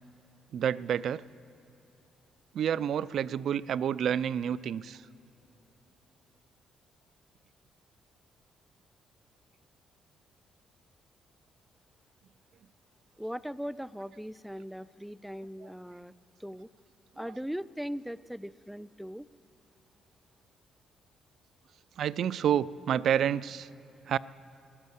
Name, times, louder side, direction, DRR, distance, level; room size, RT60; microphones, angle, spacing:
voice 1, 0.5-1.2 2.5-5.0 22.0-23.7 24.1-24.2, right 9 dB, 65° right, 19 dB, 0.3 m, -29 dB
voice 2, 13.2-16.1 16.4-16.7 17.2-19.3, equal, ahead, 17 dB, 0.4 m, -39 dB
14.5 x 11.5 x 8.0 m, 3.0 s
cardioid pair, 90°, 0 cm